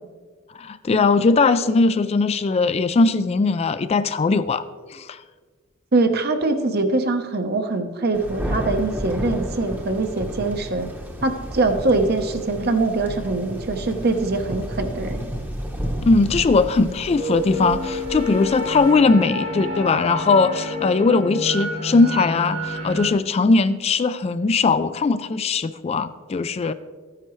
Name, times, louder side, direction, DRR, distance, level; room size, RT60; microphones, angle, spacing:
voice 1, 0.6-4.7 4.9-5.2 16.0-26.7, left 3 dB, 30° left, 13 dB, 0.3 m, -19 dB
voice 2, 5.9-10.9 11.2-15.2, right 3 dB, 50° right, 7 dB, 0.9 m, -23 dB
Thunder, 8.1-18.9, equal, 10° right, 0.9 m, -32 dB
sound 1, 16.8-23.1, left 1 dB, 90° right, 3.1 m, -28 dB
13.0 x 9.8 x 3.1 m, 1.5 s
head